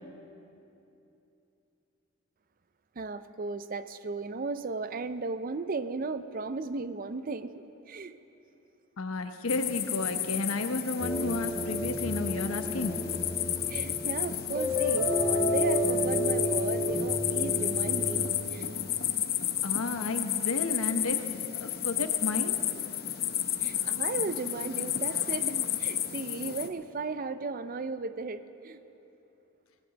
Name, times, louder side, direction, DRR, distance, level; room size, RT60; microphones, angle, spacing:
voice 1, 3.0-8.1 13.7-18.7 23.6-28.8, right 4 dB, 40° right, 12 dB, 0.5 m, -36 dB
voice 2, 9.0-13.0 19.6-22.6, left 2 dB, 85° left, 8 dB, 0.9 m, -32 dB
sound 1, 9.5-26.7, left 11 dB, 45° left, 0.7 m, -32 dB
sound 2, 11.0-18.3, equal, 5° right, 2.5 m, -31 dB
18.5 x 17.0 x 4.0 m, 2.9 s
head